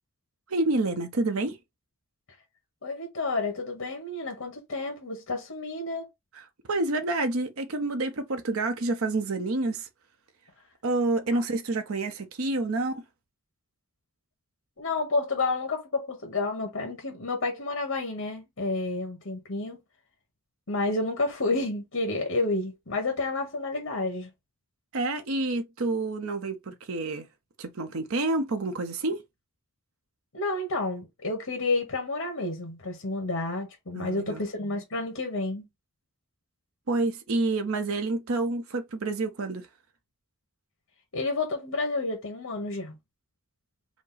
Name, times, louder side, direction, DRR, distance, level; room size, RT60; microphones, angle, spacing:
voice 1, 0.5-1.6 6.3-9.9 10.8-13.0 24.9-27.3 27.6-29.2 33.9-34.4 36.9-39.7, right 2 dB, 85° right, 0.7 m, -28 dB
voice 2, 2.8-6.1 11.3-11.4 14.8-19.8 20.7-24.3 30.3-35.6 41.1-42.9, left 3 dB, 80° left, 1.3 m, -30 dB
5.0 x 2.0 x 3.9 m
head